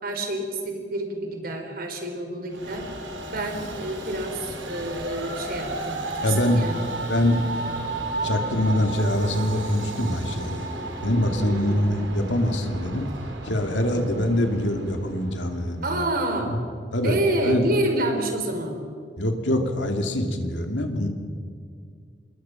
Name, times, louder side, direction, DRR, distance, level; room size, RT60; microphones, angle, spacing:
voice 1, 0.0-2.8 3.3-6.8 11.4-11.8 13.9-14.0 15.8-16.5 17.0-18.8, right 1 dB, 55° right, 4 dB, 4.1 m, -28 dB
Train, 2.5-16.0, right 2 dB, 85° right, 3.3 m, -34 dB
voice 2, 6.2-6.7 7.1-7.5 8.2-10.6 11.0-13.1 13.4-16.0 16.4-16.6 16.9-17.2 17.4-17.7 19.2-21.1, left 1 dB, 75° left, 5 dB, 2.6 m, -24 dB
27.0 x 21.5 x 5.9 m, 2.2 s
head